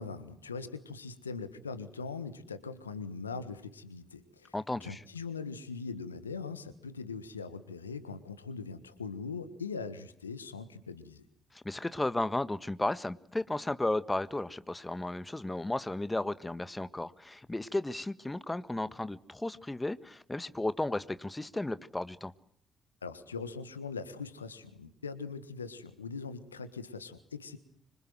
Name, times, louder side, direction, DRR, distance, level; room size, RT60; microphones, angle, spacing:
voice 1, 0.0-4.5 4.8-11.2 23.0-27.6, left 4 dB, 90° left, 13 dB, 1.4 m, -41 dB
voice 2, 4.5-5.0 11.5-22.3, left 2 dB, 15° left, 14 dB, 1.7 m, -34 dB
26.0 x 25.0 x 7.9 m, 0.63 s
figure-of-eight pair, 40°, 0 cm